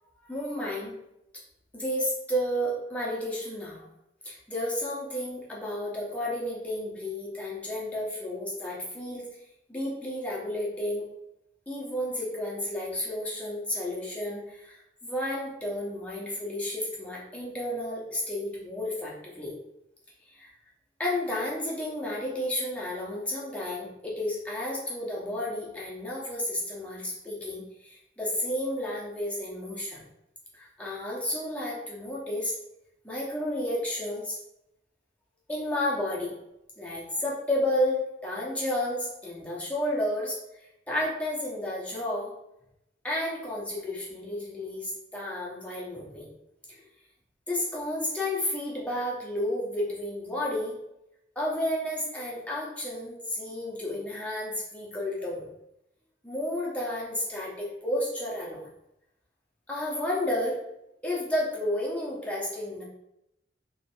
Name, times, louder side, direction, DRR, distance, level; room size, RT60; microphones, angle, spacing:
voice 1, 0.2-0.9 1.7-3.9 4.2-9.2 9.7-11.1 11.7-19.5 20.3-20.5 21.0-30.0 30.5-32.6 33.0-34.4 35.5-36.3 36.8-40.4 40.9-42.3 43.0-46.3 46.7-46.8 47.5-50.7 51.3-55.5 56.2-58.7 59.7-60.6 61.0-62.8, left 1 dB, 5° left, -5 dB, 0.9 m, -32 dB
3.2 x 2.9 x 4.4 m, 0.84 s
head